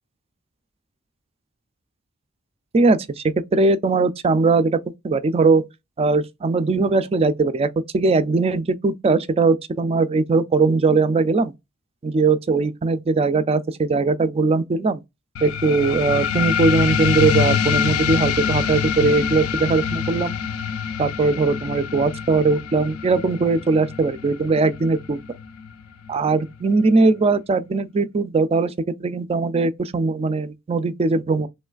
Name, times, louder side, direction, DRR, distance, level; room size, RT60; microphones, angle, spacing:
voice 1, 2.7-3.2 3.5-4.8 5.0-5.6 6.0-11.5 12.0-15.0 15.4-20.4 21.0-25.2 26.1-28.7 29.0-31.5, right 3 dB, 25° right, 0.3 m, -20 dB
sound 1, 15.4-26.4, left 7 dB, 70° left, 0.4 m, -25 dB
3.1 x 3.1 x 2.3 m
head